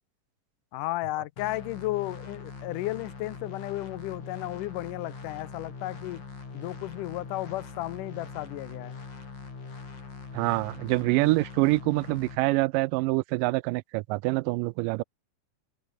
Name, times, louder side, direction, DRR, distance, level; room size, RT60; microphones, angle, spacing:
voice 1, 0.7-6.2 6.5-9.0, left 18 dB, 80° left, 2.1 m, -34 dB
sound 1, 1.4-12.4, left 4 dB, 60° left, 7.2 m, -42 dB
voice 2, 10.3-15.0, right 22 dB, 85° right, 2.1 m, -26 dB
omnidirectional pair, 3.8 m